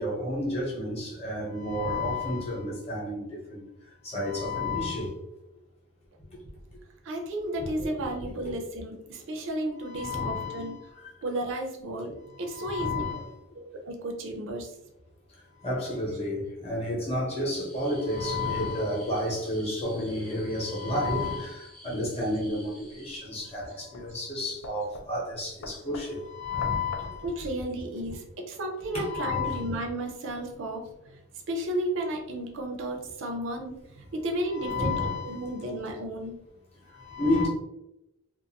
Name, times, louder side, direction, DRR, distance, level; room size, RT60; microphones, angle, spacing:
voice 1, 0.0-3.7 4.0-5.1 7.6-7.9 9.8-10.9 12.3-13.4 15.6-27.3 28.9-29.7 34.5-35.6 36.9-37.5, left 2 dB, 25° left, 0.8 m, -31 dB
voice 2, 7.0-10.8 11.2-13.0 13.5-14.7 17.0-17.1 20.4-20.5 27.2-30.8 31.5-34.9 35.2-36.3, right 1 dB, 60° right, 0.4 m, -33 dB
sound 1, 17.5-23.2, left 1 dB, 5° left, 0.5 m, -51 dB
sound 2, 22.5-28.1, left 3 dB, 65° left, 0.3 m, -47 dB
2.5 x 2.4 x 2.7 m
head